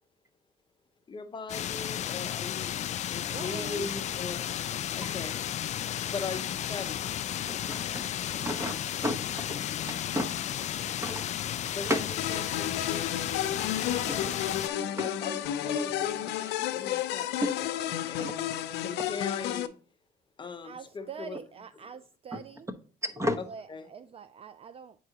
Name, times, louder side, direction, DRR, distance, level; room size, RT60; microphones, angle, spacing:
voice 1, 1.1-2.8 3.1-4.4 4.9-5.6 6.0-7.2 11.7-13.0 14.2-14.3 15.0-17.3 17.6-18.5 18.8-19.7 20.4-21.4 23.4-23.9, left 4 dB, 30° left, 0.8 m, -40 dB
sound 1, 1.5-14.7, left 11 dB, 45° left, 0.4 m, -33 dB
voice 2, 3.3-3.9 20.6-22.7 23.5-25.0, right 7 dB, 35° right, 0.4 m, -44 dB
voice 3, 7.5-8.1 8.3-8.7 9.0-10.3 11.0-11.2 11.8-12.0 14.1-14.2 15.0-15.1 17.4-17.5 18.2-18.3 22.3-22.4 23.0-23.4, left 1 dB, 15° right, 0.9 m, -32 dB
sound 2, 12.2-19.7, left 11 dB, 80° left, 0.6 m, -32 dB
8.8 x 4.8 x 2.9 m
cardioid pair, 110°, 17 cm